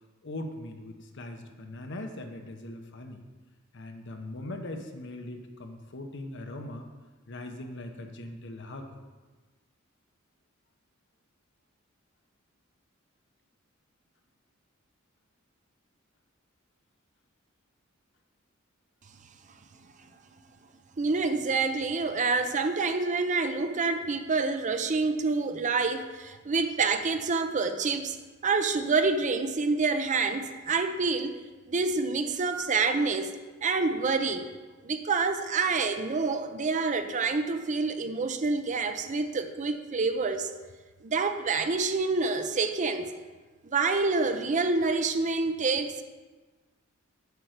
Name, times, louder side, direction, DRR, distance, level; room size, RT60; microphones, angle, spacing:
voice 1, 0.2-3.2 3.7-6.9 7.3-8.9, left 1 dB, 60° left, 5 dB, 0.9 m, -40 dB
voice 2, 21.0-28.2 28.4-31.4 31.7-33.3 33.6-34.5 34.8-40.5 41.0-43.1 43.6-46.0, right 4 dB, 35° right, 8 dB, 0.5 m, -27 dB
8.2 x 4.6 x 6.5 m, 1.3 s
head